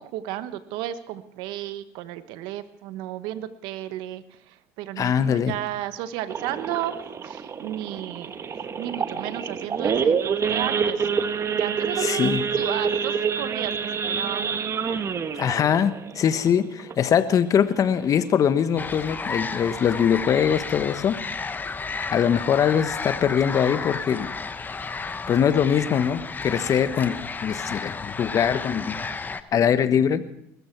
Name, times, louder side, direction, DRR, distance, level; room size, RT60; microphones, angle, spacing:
voice 1, 0.0-8.4 8.8-11.1 11.4-14.7, right 13 dB, 75° right, 12 dB, 1.2 m, -33 dB
voice 2, 5.0-5.5 12.0-12.4 15.4-21.2 22.1-24.3 25.3-29.0 29.5-30.2, left 8 dB, 45° left, 11 dB, 1.3 m, -22 dB
Idling / Accelerating revving vroom / Sawing, 6.3-17.4 17.8-18.0 18.2-18.3 18.8-19.1 19.6-19.7 19.9-20.2, right 6 dB, 35° right, 1.1 m, -27 dB
sound 1, 18.8-29.4, left 4 dB, 25° left, 1.1 m, -32 dB
20.5 x 14.0 x 4.7 m, 0.73 s
supercardioid pair, 80°, 8 cm